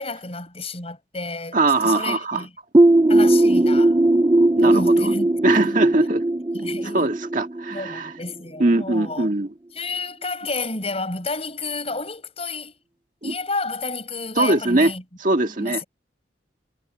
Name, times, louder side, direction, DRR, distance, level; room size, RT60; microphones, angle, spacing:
voice 1, 0.0-2.5 3.1-4.0 4.6-5.9 6.5-7.1 7.7-9.3 9.8-12.7 13.2-15.0 15.6-15.8, left 3 dB, 30° left, 8.0 m, -31 dB
voice 2, 1.5-2.5 4.6-5.1 5.4-6.2 6.9-8.1 8.6-9.5 13.2-13.3 14.4-14.9 15.2-15.8, right 2 dB, 45° right, 1.8 m, -21 dB
sound 1, 2.7-8.3, right 1 dB, 20° right, 0.5 m, -18 dB
head